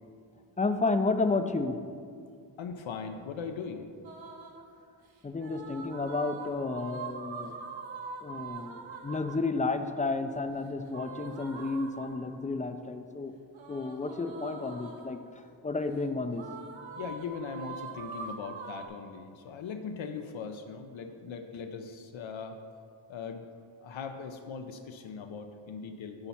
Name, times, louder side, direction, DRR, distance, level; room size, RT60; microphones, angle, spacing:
voice 1, 0.6-1.8 5.2-7.5 8.2-13.3 13.7-15.2 15.6-16.4, left 3 dB, 20° left, 8 dB, 0.3 m, -31 dB
voice 2, 2.6-3.9 17.0-22.6 23.1-23.4 23.8-26.3, left 5 dB, 85° left, 6 dB, 0.6 m, -40 dB
sound 1, 4.0-4.7 5.3-9.5 10.9-12.4 13.5-15.2 16.3-18.9, right 4 dB, 80° right, 1.0 m, -43 dB
8.9 x 4.1 x 5.6 m, 2.3 s
wide cardioid pair, 110°, 46 cm